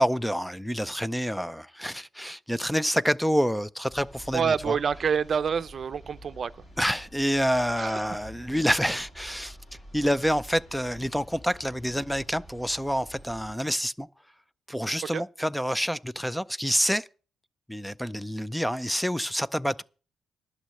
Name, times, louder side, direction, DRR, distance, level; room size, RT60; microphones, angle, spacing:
voice 1, 0.0-4.8 6.8-9.6 9.9-14.1 14.7-17.1 17.7-19.8, equal, ahead, 0.4 m, -27 dB
sound 1, 3.9-13.6, equal, 35° left, 3.0 m, -48 dB
voice 2, 4.3-6.5 7.8-7.9 15.1-15.2, right 6 dB, 45° right, 0.6 m, -27 dB
11.5 x 6.4 x 7.6 m
cardioid pair, 90°, 0 cm